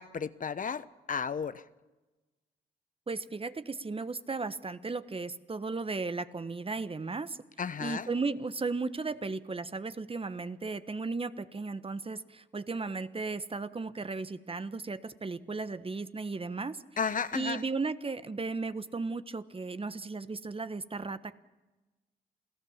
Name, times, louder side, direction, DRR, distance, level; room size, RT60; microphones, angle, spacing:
voice 1, 0.0-1.6 7.6-8.1 17.0-17.6, left 6 dB, 50° left, 14 dB, 1.0 m, -33 dB
voice 2, 3.1-7.4 7.8-16.8 17.3-21.3, right 3 dB, 30° right, 13 dB, 1.3 m, -35 dB
28.5 x 16.0 x 7.4 m, 1.1 s
supercardioid pair, 50°, 18 cm